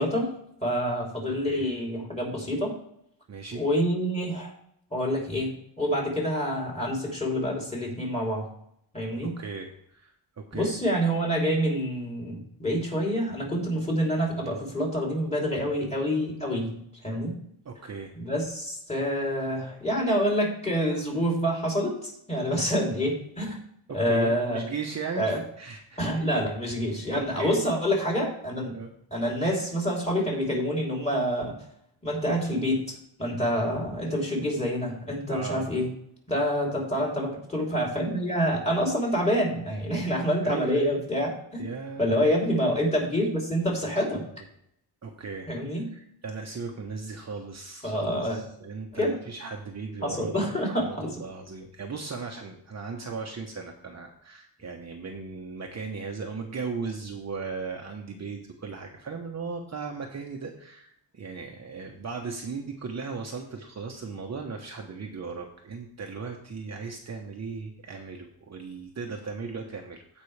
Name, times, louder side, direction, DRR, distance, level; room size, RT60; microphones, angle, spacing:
voice 1, 0.0-2.8 3.5-4.5 4.9-8.5 8.9-9.3 10.5-16.7 17.0-17.3 18.2-23.6 23.9-24.7 25.2-25.4 26.0-28.8 29.1-31.5 32.0-35.9 36.3-41.7 42.0-44.3 45.5-45.9 47.8-48.4 48.9-49.2 50.0-51.2, equal, 15° left, -2 dB, 3.3 m, -27 dB
voice 2, 3.3-3.6 9.2-10.8 17.6-18.1 23.9-26.0 27.1-27.6 28.7-28.9 35.3-35.7 40.4-40.9 41.6-42.1 45.0-45.5 45.9-50.3 50.7-70.2, right 4 dB, 35° right, 1 dB, 1.0 m, -37 dB
15.5 x 5.3 x 3.3 m, 0.73 s
wide cardioid pair, 135°, 45 cm